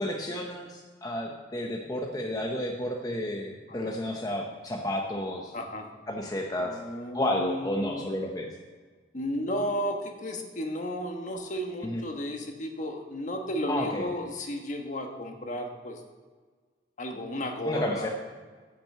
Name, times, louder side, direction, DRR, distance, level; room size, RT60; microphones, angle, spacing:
voice 1, 0.0-5.5 6.1-6.8 7.1-8.5 11.8-12.0 13.7-14.1 17.6-18.1, left 1 dB, 20° left, 1 dB, 0.7 m, -31 dB
voice 2, 3.7-4.0 5.5-5.9 6.6-8.0 9.1-16.0 17.0-18.1, equal, 45° left, 4 dB, 1.2 m, -33 dB
10.0 x 6.1 x 7.4 m, 1.5 s
head